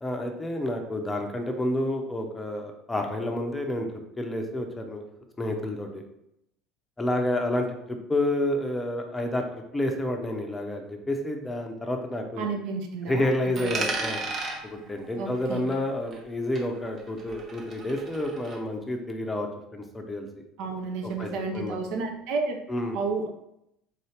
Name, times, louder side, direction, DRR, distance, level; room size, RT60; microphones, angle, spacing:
voice 1, 0.0-5.0 5.4-6.0 7.0-12.5 13.1-14.2 14.6-20.3 21.0-21.8 22.7-23.0, left 1 dB, 15° left, 3 dB, 0.6 m, -29 dB
voice 2, 12.4-13.8 15.2-15.6 20.6-22.6 22.9-23.3, right 4 dB, 55° right, 3 dB, 0.5 m, -31 dB
Coin (dropping), 13.5-16.3 16.6-18.6, right 3 dB, 35° right, 0.9 m, -35 dB
3.8 x 2.7 x 3.2 m, 0.81 s
figure-of-eight pair, 65°, 0 cm